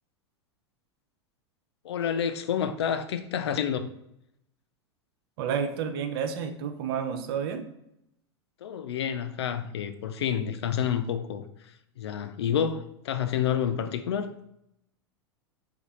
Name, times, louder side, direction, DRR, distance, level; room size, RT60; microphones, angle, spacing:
voice 1, 1.8-3.9 8.6-14.3, left 8 dB, 70° left, 0.4 m, -29 dB
voice 2, 5.4-7.6, right 7 dB, 60° right, 0.5 m, -30 dB
3.4 x 2.4 x 4.0 m
figure-of-eight pair, 90°, 14 cm